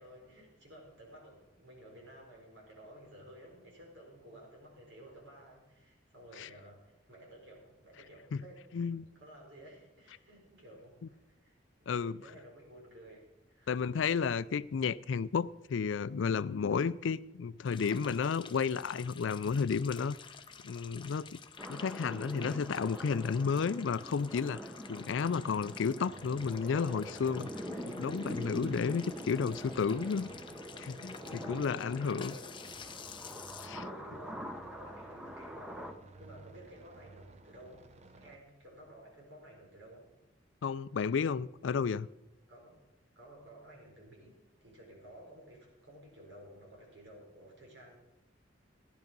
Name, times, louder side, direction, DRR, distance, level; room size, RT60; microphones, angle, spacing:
voice 1, 0.0-8.6 9.1-11.5 11.8-13.7 31.2-32.5 33.3-37.9 38.2-40.1 42.5-42.7 43.1-48.0, equal, 75° right, 4.9 m, -54 dB
voice 2, 8.7-9.1 11.9-12.2 13.7-20.2 20.6-21.4 21.7-27.5 27.9-30.3 30.8-31.2 31.5-32.3 33.6-33.8 40.6-42.1, left 6 dB, 85° left, 0.4 m, -32 dB
sound 1, 17.7-33.7, left 6 dB, 25° left, 0.7 m, -51 dB
sound 2, 21.6-35.9, equal, 5° right, 1.0 m, -44 dB
sound 3, 26.0-38.4, right 2 dB, 35° right, 0.7 m, -55 dB
15.0 x 10.5 x 5.3 m
head